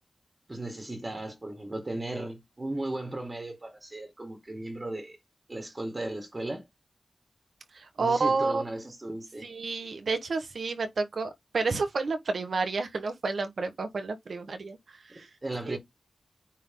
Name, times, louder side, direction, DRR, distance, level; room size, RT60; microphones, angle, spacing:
voice 1, 0.5-5.2 5.5-6.7 8.0-9.5 15.1-15.8, right 2 dB, 35° right, 2.2 m, -36 dB
voice 2, 7.7-8.6 9.4-14.8 15.0-15.3 15.6-15.8, right 4 dB, 80° right, 1.4 m, -30 dB
9.1 x 3.8 x 3.8 m
wide cardioid pair, 85°, 0 cm